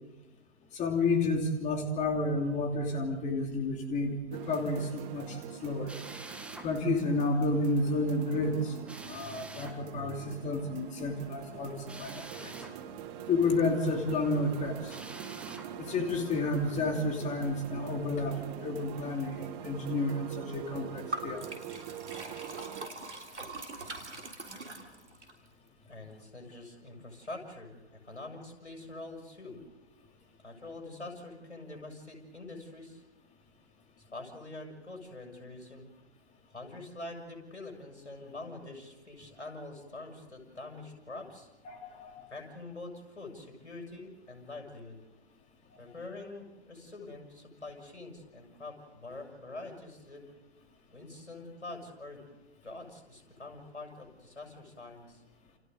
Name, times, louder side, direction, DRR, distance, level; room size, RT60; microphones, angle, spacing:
voice 1, 0.7-5.9 6.6-8.7 9.1-12.5 13.3-15.0 15.8-21.5 41.6-42.2, left 2 dB, 20° left, 3 dB, 2.8 m, -31 dB
sound 1, 4.3-22.9, right 8 dB, 30° right, 2.3 m, -44 dB
Drill, 5.9-6.7 8.9-9.8 11.9-12.8 14.9-15.7, right 2 dB, 5° right, 1.8 m, -46 dB
Liquid, 21.1-25.3, right 2 dB, 85° right, 3.6 m, -42 dB
voice 2, 25.9-29.6 30.4-33.0 34.0-35.9 36.5-41.5 42.3-45.0 45.8-50.2 50.9-52.2 52.6-55.2, left 2 dB, 90° left, 1 dB, 7.1 m, -45 dB
30.0 x 29.0 x 4.0 m, 1.1 s
figure-of-eight pair, 120°, 34 cm